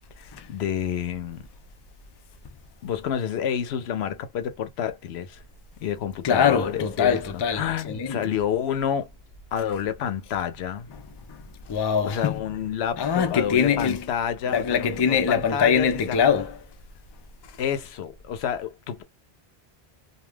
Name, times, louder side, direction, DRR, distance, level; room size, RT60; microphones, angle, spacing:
voice 1, 0.2-1.5 2.8-5.4 5.8-9.1 9.5-10.9 12.0-16.2 17.6-19.0, left 8 dB, 80° left, 0.8 m, -29 dB
voice 2, 6.2-8.3 10.9-11.0 11.3-12.4 13.0-14.1 14.5-16.6 17.5-17.6, left 7 dB, 45° left, 0.3 m, -23 dB
2.3 x 2.3 x 3.2 m
omnidirectional pair, 1.1 m